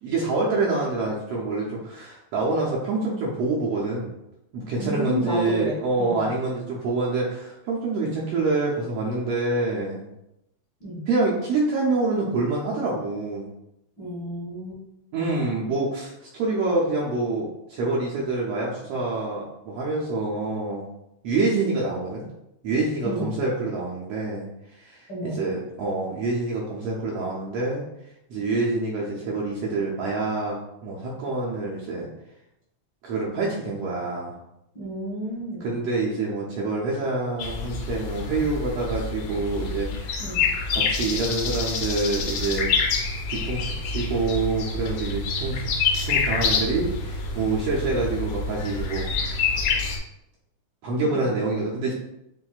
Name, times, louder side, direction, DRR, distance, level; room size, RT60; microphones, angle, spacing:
voice 1, 0.0-4.1 4.5-10.1 11.1-13.5 15.1-20.9 21.2-22.2 22.6-24.5 24.8-27.8 28.3-30.6 30.8-32.1 33.0-34.3 35.6-40.2 40.7-42.7 43.3-49.4 50.8-51.9, right 3 dB, 70° right, -4 dB, 1.6 m, -26 dB
voice 2, 4.7-6.2 10.8-11.0 14.0-14.8 23.0-23.3 25.1-25.4 34.7-35.7 40.2-40.4 51.0-51.3, equal, 45° left, -7 dB, 1.7 m, -31 dB
sound 1, 37.4-50.0, left 4 dB, 85° left, 1.3 m, -27 dB
7.4 x 2.6 x 2.4 m, 0.85 s
omnidirectional pair, 3.3 m